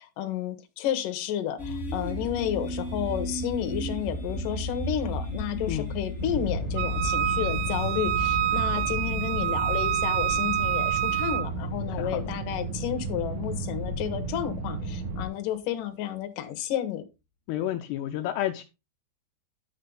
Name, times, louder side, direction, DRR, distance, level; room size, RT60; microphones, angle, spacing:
voice 1, 0.0-17.0, left 11 dB, 65° left, 2.4 m, -31 dB
sound 1, 1.6-14.5, left 1 dB, 35° left, 1.0 m, -35 dB
sound 2, 6.2-15.3, right 3 dB, 60° right, 3.4 m, -34 dB
Wind instrument woodwind instrument, 6.8-11.5, right 11 dB, 80° right, 2.7 m, -27 dB
voice 2, 11.9-12.3 17.5-18.6, left 12 dB, 80° left, 2.5 m, -31 dB
11.5 x 6.5 x 3.9 m
omnidirectional pair, 5.1 m